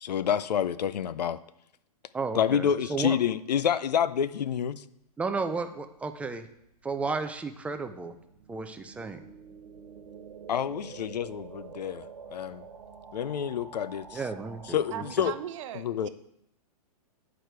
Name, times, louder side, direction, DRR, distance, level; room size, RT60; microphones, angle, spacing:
voice 1, 0.0-1.4 2.3-4.8 10.5-12.6 13.1-14.2 14.7-15.3 15.7-16.1, left 8 dB, 85° left, 16 dB, 0.5 m, -28 dB
voice 2, 2.1-3.2 5.2-6.5 6.8-8.2 8.5-9.2 14.1-15.2, right 4 dB, 5° right, 8 dB, 0.4 m, -33 dB
sound 1, 6.6-15.4, right 6 dB, 70° right, 1.3 m, -48 dB
voice 3, 14.9-16.1, right 11 dB, 50° right, 11 dB, 0.7 m, -38 dB
9.9 x 4.9 x 4.5 m, 0.79 s
hypercardioid pair, 130°, 21 cm